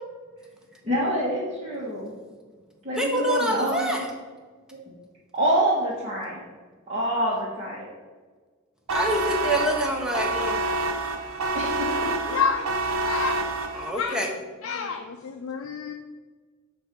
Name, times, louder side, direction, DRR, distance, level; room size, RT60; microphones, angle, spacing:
voice 1, 0.8-2.1 2.8-3.9 5.3-6.4 6.9-7.9 11.5-11.9, right 1 dB, 30° right, -8 dB, 1.2 m, -26 dB
voice 2, 3.0-4.1 8.9-10.6 13.7-14.3, equal, 5° right, 1 dB, 0.6 m, -26 dB
sound 1, 8.9-14.1, right 3 dB, 75° right, 0.6 m, -28 dB
voice 3, 12.3-13.4 14.0-14.1 14.6-15.9, left 5 dB, 65° left, 4 dB, 0.4 m, -28 dB
7.9 x 2.7 x 6.0 m, 1.5 s
head